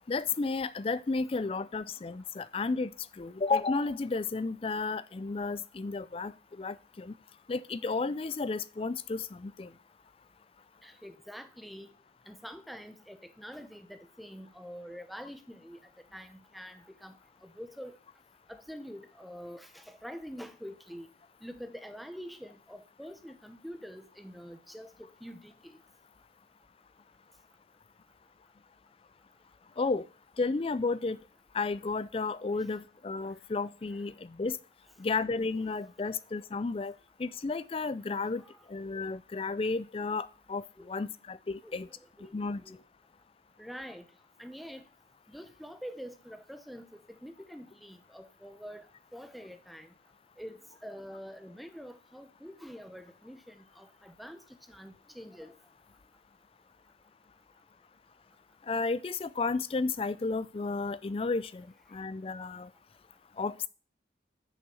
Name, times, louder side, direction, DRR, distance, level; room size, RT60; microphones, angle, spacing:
voice 1, 0.1-7.1 7.5-9.7 29.8-30.0 30.4-31.2 31.5-34.6 35.0-36.9 37.2-38.4 38.7-41.9 42.3-42.6 58.7-62.7 63.4-63.7, left 3 dB, 30° left, 0.4 m, -32 dB
voice 2, 10.8-11.9 12.3-15.8 16.1-17.2 17.4-18.0 18.5-21.1 21.4-25.8 38.4-38.6 40.8-40.9 41.6-41.8 42.2-42.3 42.6-42.8 43.6-44.0 44.4-44.8 45.3-48.9 49.1-49.9 50.4-55.5, equal, ahead, 0.7 m, -46 dB
6.5 x 5.5 x 6.8 m
head